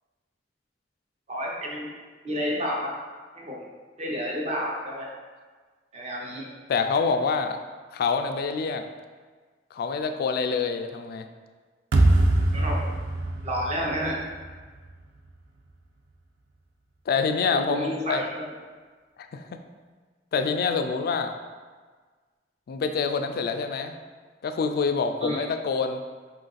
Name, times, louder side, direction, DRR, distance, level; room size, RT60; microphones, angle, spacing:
voice 1, 1.3-1.9 2.2-2.9 3.4-3.6 4.0-5.1 5.9-6.5 12.5-12.8 13.4-14.2 17.5-18.5 25.2-25.4, equal, 40° right, -3 dB, 0.8 m, -30 dB
voice 2, 6.7-7.6 7.9-8.8 9.7-11.3 17.1-18.2 19.3-19.6 20.3-21.3 22.7-24.0 24.4-26.0, left 5 dB, 60° left, 7 dB, 0.3 m, -26 dB
sound 1, 11.9-15.0, right 1 dB, 85° right, 0.4 m, -23 dB
4.6 x 2.5 x 3.9 m, 1.5 s
head